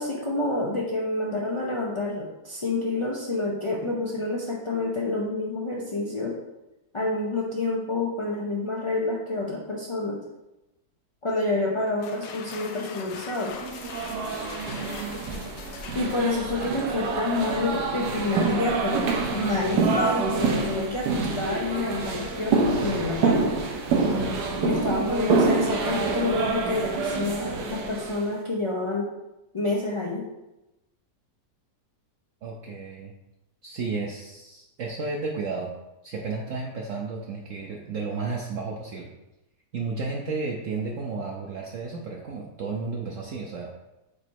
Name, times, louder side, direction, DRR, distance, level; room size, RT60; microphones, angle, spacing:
voice 1, 0.0-6.4 6.9-10.2 11.2-13.5 15.9-23.6 24.6-29.1 29.5-30.3, left 2 dB, 55° left, -4 dB, 0.3 m, -28 dB
sound 1, 11.9-17.5, left 6 dB, 85° left, 1.3 m, -42 dB
sound 2, 13.5-28.3, right 4 dB, 75° right, 1.5 m, -27 dB
voice 2, 32.4-33.1 33.6-35.7 36.0-39.1 39.7-43.7, right 4 dB, 60° right, -1 dB, 0.9 m, -32 dB
5.0 x 4.1 x 4.6 m, 0.95 s
omnidirectional pair, 1.8 m